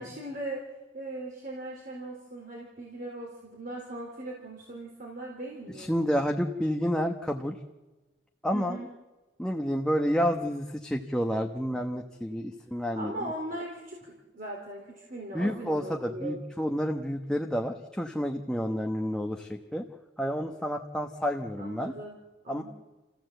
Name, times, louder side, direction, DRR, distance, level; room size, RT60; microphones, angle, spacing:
voice 1, 0.0-5.9 8.5-8.9 13.0-16.4 21.6-22.2 22.4-22.6, right 1 dB, 45° right, -2 dB, 4.0 m, -39 dB
voice 2, 5.8-7.6 8.4-8.8 9.4-13.1 15.3-19.9 20.2-21.9 22.5-22.6, equal, 5° left, 3 dB, 1.0 m, -29 dB
29.0 x 15.5 x 7.9 m, 1.2 s
head